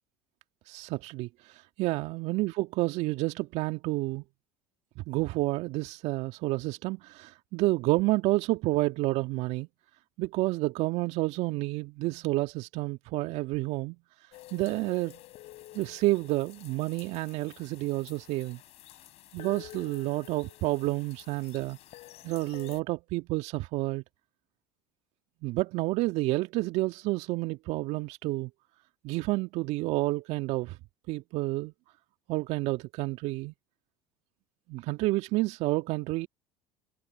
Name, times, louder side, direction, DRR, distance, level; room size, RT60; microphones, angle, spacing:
voice 1, 0.7-4.2 5.0-9.7 10.2-14.0 14.5-15.2 15.7-18.6 19.3-21.8 22.2-24.0 25.4-28.5 29.0-30.8 31.1-31.7 32.3-33.5 34.7-36.3, right 20 dB, 60° right, 2.1 m, -30 dB
sound 1, 14.3-22.8, left 16 dB, 55° left, 5.0 m, -50 dB
hypercardioid pair, 70°, 13 cm